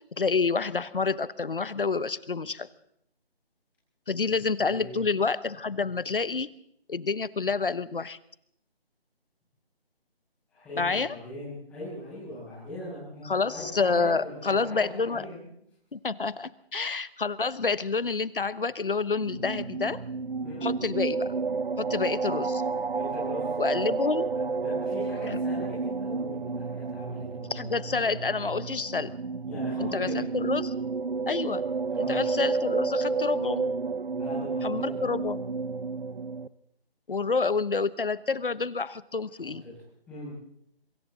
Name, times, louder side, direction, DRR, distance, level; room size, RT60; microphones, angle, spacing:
voice 1, 0.1-2.7 4.1-6.5 6.9-8.2 10.8-11.1 13.3-15.3 15.9-20.0 20.6-21.3 21.8-22.6 23.6-24.3 25.3-25.4 27.5-29.1 29.8-30.7 31.3-31.6 32.1-33.7 34.6-35.4 37.1-39.6, left 4 dB, 60° left, 17 dB, 1.1 m, -28 dB
voice 2, 4.6-5.0 10.5-15.5 20.4-20.7 22.9-23.9 24.3-27.7 29.5-30.2 31.9-32.2 34.1-34.9 39.4-39.7 40.1-40.3, equal, 5° left, -10 dB, 6.5 m, -40 dB
sound 1, 19.1-36.5, right 4 dB, 60° right, 0.8 m, -31 dB
26.5 x 24.5 x 4.1 m, 0.73 s
figure-of-eight pair, 175°, 31 cm